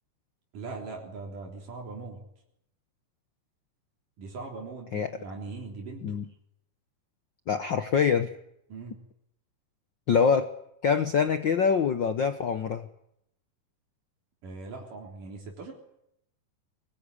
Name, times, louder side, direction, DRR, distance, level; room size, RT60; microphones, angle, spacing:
voice 1, 0.5-2.2 4.2-6.1 8.7-9.0 14.4-15.7, right 3 dB, 80° right, 0 dB, 5.2 m, -40 dB
voice 2, 7.5-8.3 10.1-10.5 10.8-12.9, left 6 dB, 75° left, 10 dB, 1.0 m, -24 dB
24.0 x 20.5 x 9.9 m, 0.79 s
omnidirectional pair, 3.7 m